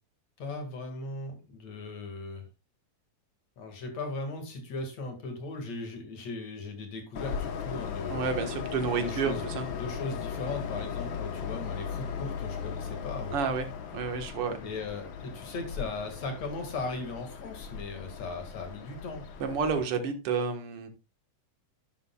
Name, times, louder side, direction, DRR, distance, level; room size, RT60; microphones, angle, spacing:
voice 1, 0.4-2.5 3.6-8.3 8.9-13.4 14.6-19.2, left 3 dB, 55° left, 4 dB, 3.1 m, -38 dB
Train, 7.1-19.8, left 7 dB, 75° left, 1.1 m, -37 dB
voice 2, 8.1-9.7 13.3-13.7 13.9-14.6 19.4-20.9, right 5 dB, 55° right, 6 dB, 2.0 m, -30 dB
11.5 x 10.5 x 2.3 m, 0.28 s
omnidirectional pair, 3.8 m